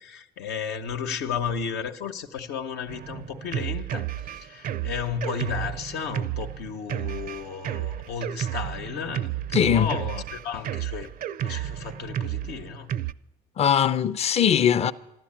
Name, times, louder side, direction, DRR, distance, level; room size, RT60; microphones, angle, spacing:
voice 1, 0.0-4.1 4.3-11.1 11.4-12.9, left 6 dB, 85° left, 1.0 m, -33 dB
Drum kit, 2.9-13.1, right 11 dB, 55° right, 0.4 m, -32 dB
voice 2, 9.5-10.0 13.6-14.9, left 8 dB, 40° left, 0.6 m, -21 dB
12.5 x 12.5 x 8.7 m
cardioid pair, 110°, 17 cm